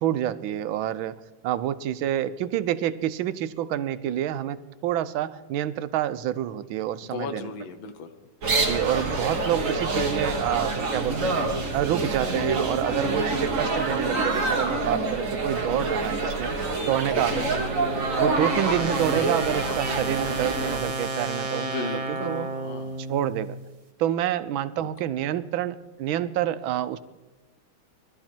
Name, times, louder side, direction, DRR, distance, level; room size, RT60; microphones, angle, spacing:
voice 1, 0.0-7.5 8.6-17.7 18.2-22.5 23.0-23.5 24.0-27.0, right 11 dB, 90° right, 14 dB, 1.5 m, -28 dB
voice 2, 7.0-8.1 17.1-17.5 21.5-23.0 24.8-24.9, left 5 dB, 80° left, 9 dB, 1.8 m, -36 dB
sound 1, 8.4-20.8, right 3 dB, 45° right, 1.6 m, -27 dB
sound 2, 16.5-23.6, right 3 dB, 25° right, 0.9 m, -32 dB
19.5 x 12.5 x 4.4 m, 1.1 s
omnidirectional pair, 2.1 m